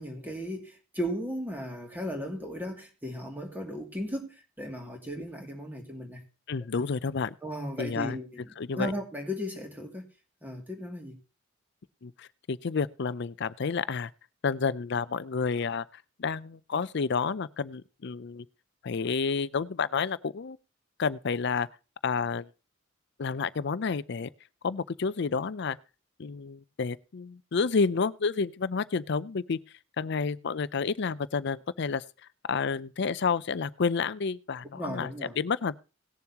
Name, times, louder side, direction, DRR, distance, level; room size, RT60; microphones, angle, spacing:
voice 1, 0.0-6.2 7.4-8.4 8.7-10.0 10.4-11.2 34.7-35.3, equal, 10° right, 2.5 m, -36 dB
voice 2, 6.5-7.4 7.8-8.2 8.6-8.9 12.0-14.1 14.4-18.5 18.8-20.6 21.0-21.7 22.0-22.5 23.2-24.3 24.6-25.8 26.2-29.6 30.0-32.0 32.5-35.1 35.4-35.8, left 5 dB, 60° left, 0.5 m, -30 dB
19.0 x 7.1 x 2.9 m
head